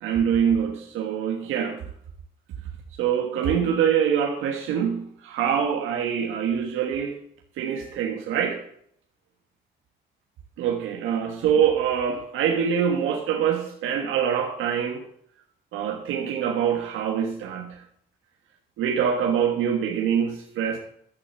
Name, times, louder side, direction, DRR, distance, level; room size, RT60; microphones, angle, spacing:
voice 1, 0.0-1.8 3.0-7.2 7.6-8.6 10.6-15.0 15.7-17.8 18.8-20.8, right 8 dB, 90° right, 2 dB, 1.4 m, -24 dB
12.0 x 6.8 x 6.9 m, 0.67 s
cardioid pair, 90°, 20 cm